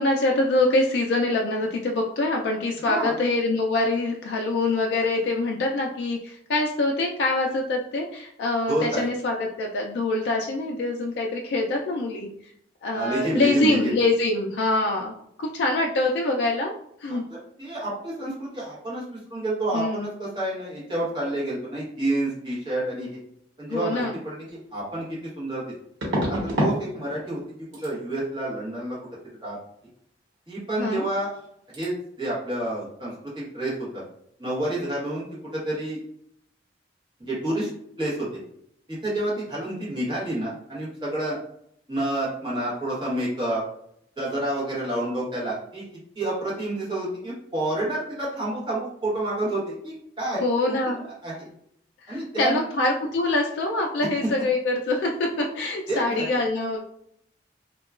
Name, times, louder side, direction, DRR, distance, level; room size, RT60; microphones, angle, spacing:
voice 1, 0.0-12.3 12.8-15.1 15.4-16.7 17.0-17.2 19.7-20.1 23.7-24.1 30.8-31.0 50.4-51.0 52.1-56.8, left 2 dB, 75° left, 1 dB, 0.3 m, -24 dB
voice 2, 2.8-3.2 8.7-9.1 12.9-14.0 17.1-17.2 17.6-23.2 23.6-24.4 24.7-25.6 26.3-27.4 27.8-29.0 29.4-29.6 30.5-31.3 31.7-34.0 34.4-35.3 35.5-36.0 37.2-37.7 38.0-38.4 38.9-41.4 41.9-43.6 44.2-45.9 46.1-50.8 51.2-51.5 52.1-52.7 55.9-56.4, right 1 dB, 25° right, -7 dB, 1.1 m, -29 dB
sound 1, 24.5-24.6 26.0-26.8 27.1-27.5 27.7-27.9 30.9-31.0 31.2-31.5 31.7-31.9, equal, 90° right, 1.0 m, -27 dB
2.8 x 2.2 x 2.3 m, 0.71 s
head